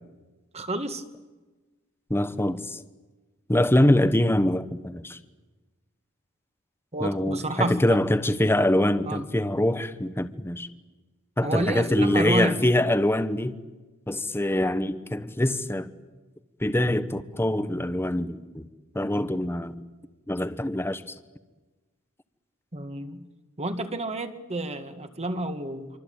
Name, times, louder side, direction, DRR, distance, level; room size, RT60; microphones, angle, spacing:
voice 1, 0.5-1.0 6.9-8.0 9.1-9.2 11.4-12.6 22.7-23.2 23.6-26.0, right 1 dB, 30° right, 1.9 m, -30 dB
voice 2, 2.1-2.8 3.5-5.2 7.0-10.7 11.4-13.6 14.1-15.9 16.6-18.7 18.9-19.8 20.3-21.1, left 1 dB, 10° left, 1.1 m, -24 dB
26.5 x 25.0 x 9.0 m
head